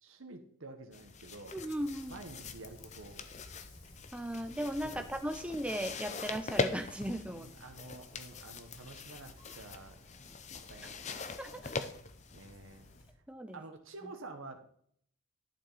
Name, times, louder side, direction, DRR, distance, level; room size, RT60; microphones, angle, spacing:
voice 1, 0.0-1.6 2.1-3.3 4.8-5.1 7.3-10.0 10.5-11.1 12.3-12.8 13.5-14.7, right 2 dB, 70° right, 5 dB, 1.3 m, -49 dB
sound 1, 0.9-13.0, left 3 dB, 35° left, 0.6 m, -42 dB
voice 2, 1.5-2.2 4.1-7.5 11.4-11.9 13.3-13.6, right 1 dB, 5° right, 6 dB, 0.7 m, -37 dB
Wind, 1.7-13.1, left 1 dB, 85° left, 2.6 m, -58 dB
11.5 x 7.2 x 4.1 m, 0.63 s
head